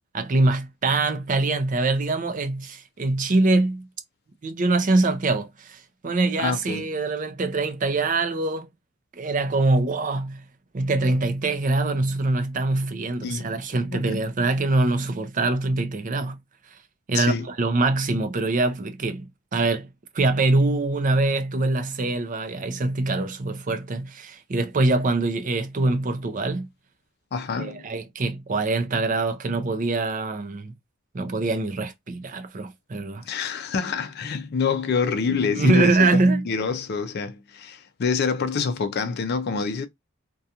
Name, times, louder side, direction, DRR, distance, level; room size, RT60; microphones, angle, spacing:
voice 1, 0.1-3.8 4.4-8.7 9.2-10.4 10.7-16.4 17.1-19.3 19.5-19.9 20.1-26.7 27.6-30.7 31.1-33.2 35.4-36.4, right 2 dB, 40° right, 0.5 m, -24 dB
voice 2, 6.4-6.9 13.2-13.5 13.9-14.3 17.1-17.5 27.3-27.9 33.2-39.9, left 5 dB, 50° left, 0.4 m, -26 dB
2.4 x 2.2 x 2.7 m
head